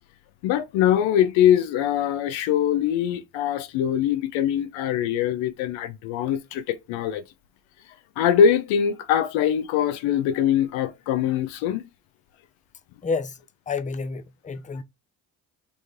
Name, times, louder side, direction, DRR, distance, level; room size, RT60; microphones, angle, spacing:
voice 1, 0.4-7.2 8.2-11.9, left 9 dB, 85° left, 0.7 m, -22 dB
voice 2, 13.7-14.8, left 4 dB, 15° left, 0.6 m, -29 dB
4.1 x 3.1 x 3.5 m
supercardioid pair, 55°, 45 cm